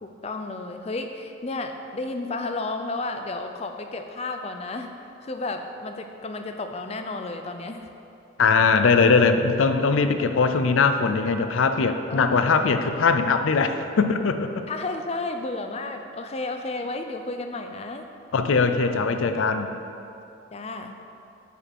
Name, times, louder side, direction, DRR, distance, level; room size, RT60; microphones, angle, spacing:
voice 1, 0.0-4.9 5.2-7.9 12.1-12.7 14.7-18.1 20.5-20.9, left 2 dB, 30° left, 6 dB, 0.5 m, -32 dB
voice 2, 8.4-14.5 18.3-19.7, left 4 dB, 85° left, 8 dB, 0.5 m, -21 dB
8.9 x 5.5 x 4.3 m, 2.8 s
head